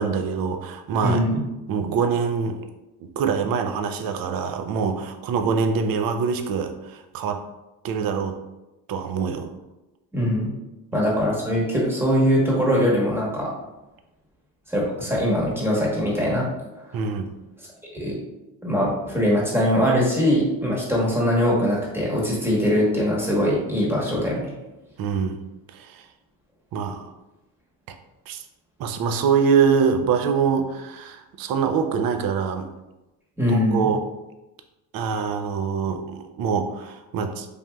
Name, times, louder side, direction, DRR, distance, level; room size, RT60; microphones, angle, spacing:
voice 1, 0.0-1.2 1.7-2.6 3.0-7.4 7.8-8.4 8.9-9.5 16.9-17.3 25.0-25.4 25.7-26.0 26.7-27.1 28.3-28.4 28.8-32.7 33.5-34.0 34.9-37.5, right 6 dB, 55° right, 7 dB, 0.4 m, -24 dB
voice 2, 1.0-1.4 10.1-10.5 10.9-13.5 14.7-16.5 16.8-17.0 17.9-18.2 18.6-24.5 33.4-33.9, equal, 5° right, -5 dB, 1.0 m, -22 dB
3.3 x 2.6 x 2.2 m, 1.0 s
cardioid pair, 80°, 44 cm